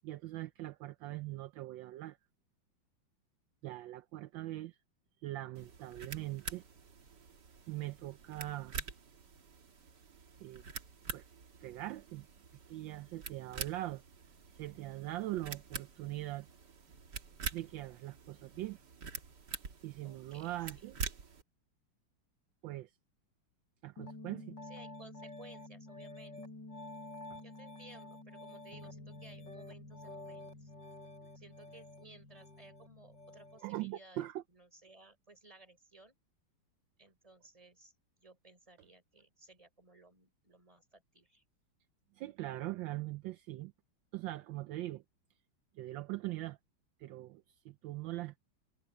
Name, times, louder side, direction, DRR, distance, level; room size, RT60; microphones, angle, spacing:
voice 1, 0.0-2.2 3.6-4.8 5.2-6.6 7.7-8.8 10.4-10.6 11.1-11.3 11.6-12.3 12.7-14.0 14.5-16.5 17.5-18.8 19.8-21.0 22.6-22.9 23.8-24.5 27.3-27.4 33.6-34.4 42.1-43.7 44.1-45.0 45.7-46.6 47.0-48.4, right 16 dB, 75° right, 1.3 m, -41 dB
sound 1, 5.5-21.4, right 5 dB, 60° right, 2.5 m, -46 dB
voice 2, 20.0-20.9 24.7-26.4 27.4-30.7 31.3-36.2 37.0-37.9 38.2-41.4, right 2 dB, 15° right, 3.9 m, -58 dB
Piano, 24.0-33.7, left 2 dB, 60° left, 8.1 m, -49 dB
omnidirectional pair, 2.2 m